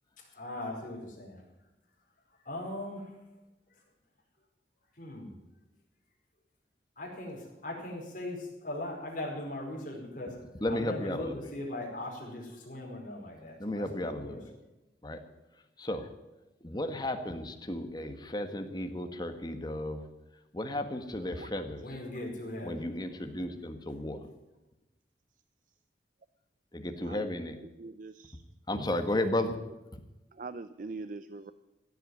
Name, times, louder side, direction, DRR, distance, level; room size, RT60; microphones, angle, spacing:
voice 1, 0.2-1.7 2.2-3.3 3.7-3.8 4.9-5.4 7.0-14.5 21.8-22.9, left 1 dB, 50° left, -1 dB, 4.7 m, -40 dB
voice 2, 10.6-11.3 13.6-14.5 15.0-15.2 15.8-16.1 16.6-20.0 20.5-21.8 22.6-24.3 26.7-27.5 28.7-29.6 29.9-30.0, left 1 dB, 25° left, 7 dB, 1.4 m, -34 dB
voice 3, 27.6-28.4 28.7-29.2 30.3-31.5, right 3 dB, 50° right, 12 dB, 0.5 m, -43 dB
16.0 x 8.1 x 9.5 m, 1.0 s
head